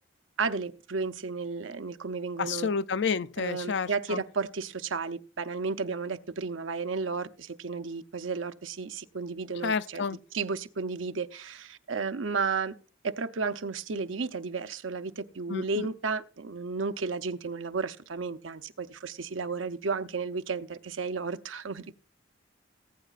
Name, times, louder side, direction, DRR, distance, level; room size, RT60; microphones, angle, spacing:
voice 1, 0.4-2.7 3.4-12.7 13.1-21.9, right 4 dB, 85° right, 0.7 m, -33 dB
voice 2, 2.4-4.2 9.6-10.2 15.5-15.9, left 5 dB, 65° left, 0.5 m, -30 dB
19.0 x 9.0 x 2.5 m
head